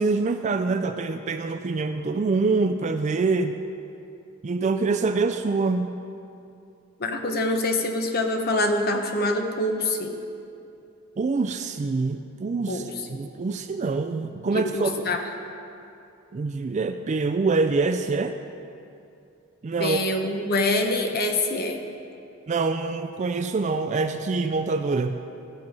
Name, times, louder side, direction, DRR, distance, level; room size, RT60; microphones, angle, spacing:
voice 1, 0.0-3.5 4.4-5.9 11.2-12.8 13.1-15.1 16.3-18.4 19.6-20.0 22.5-25.2, right 4 dB, 35° right, 8 dB, 0.3 m, -25 dB
voice 2, 7.0-10.2 12.7-13.2 14.5-15.2 19.8-21.8, left 2 dB, 45° left, 4 dB, 1.0 m, -25 dB
16.0 x 6.9 x 5.2 m, 2.7 s
head